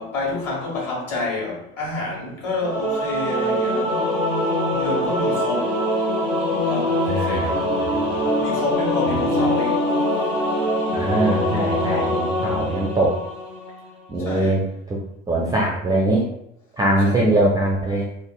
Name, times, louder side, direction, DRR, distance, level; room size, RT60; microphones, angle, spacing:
voice 1, 0.0-4.3 4.7-5.8 6.5-7.7 8.0-9.9 12.6-13.0 14.2-14.7 17.0-17.3, left 2 dB, 40° left, 1.5 m, -29 dB
Singing / Musical instrument, 2.6-13.9, left 1 dB, 80° left, 1.1 m, -23 dB
voice 2, 7.1-8.2 9.1-9.2 10.9-13.2 14.1-14.6 14.9-15.0 15.3-16.3 16.8-18.1, right 1 dB, 10° right, 0.4 m, -22 dB
3.4 x 2.1 x 2.3 m
figure-of-eight pair, 60°, 38 cm